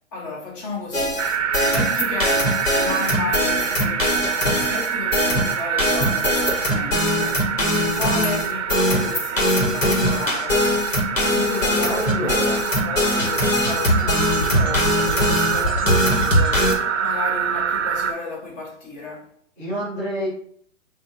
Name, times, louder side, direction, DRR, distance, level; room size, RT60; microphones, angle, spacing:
voice 1, 0.1-7.4 7.7-10.7 11.2-19.3, left 3 dB, 20° left, 0.9 m, -33 dB
sound 1, 0.9-16.7, left 1 dB, 85° left, 1.3 m, -21 dB
sound 2, 1.2-18.1, right 8 dB, 70° right, 0.5 m, -26 dB
voice 2, 11.8-12.6 19.6-20.3, right 1 dB, 5° left, 0.3 m, -28 dB
6.1 x 2.5 x 2.6 m
figure-of-eight pair, 115°, 38 cm